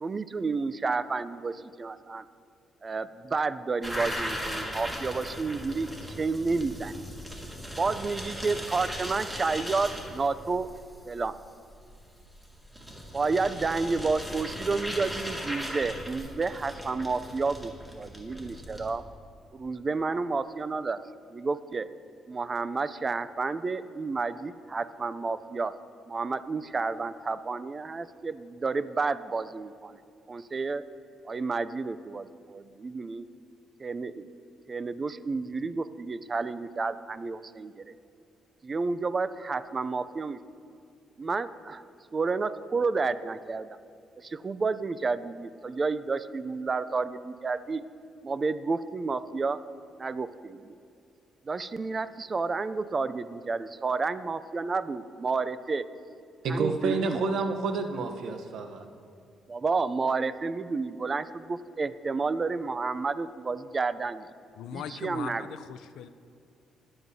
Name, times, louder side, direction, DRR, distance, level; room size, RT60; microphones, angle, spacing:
voice 1, 0.0-2.3 2.8-7.0 7.8-10.7 11.1-11.3 13.1-19.0 19.5-21.0 21.3-21.9 22.3-25.7 26.1-30.0 30.3-30.8 31.3-33.3 33.8-34.2 34.7-37.8 38.6-40.4 41.2-41.8 42.1-43.7 44.2-47.8 48.2-49.6 50.0-50.8 51.5-55.8 56.5-57.2 59.5-64.3 64.7-65.5, right 4 dB, 35° right, 14 dB, 0.4 m, -30 dB
sound 1, 3.8-18.9, equal, 5° right, 1.8 m, -38 dB
voice 2, 56.4-58.9, right 4 dB, 75° right, 5 dB, 0.9 m, -29 dB
voice 3, 64.6-66.1, left 8 dB, 85° left, 12 dB, 0.4 m, -39 dB
22.0 x 7.8 x 2.7 m, 2.4 s
cardioid pair, 90°, 0 cm